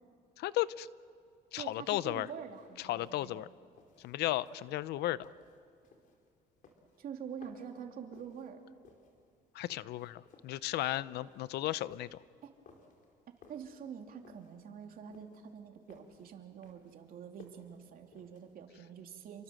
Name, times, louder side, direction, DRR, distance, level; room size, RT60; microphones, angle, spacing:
voice 1, 0.4-0.9 1.5-2.3 2.9-3.5 4.0-5.3 9.5-12.2, left 15 dB, 75° left, 18 dB, 0.6 m, -34 dB
voice 2, 1.5-3.4 7.0-8.6 12.4-12.5 13.5-19.4, right 7 dB, 60° right, 4 dB, 2.8 m, -46 dB
sound 1, 2.2-18.8, left 4 dB, 50° left, 4.1 m, -62 dB
29.0 x 23.5 x 7.7 m, 2.3 s
cardioid pair, 110°, 17 cm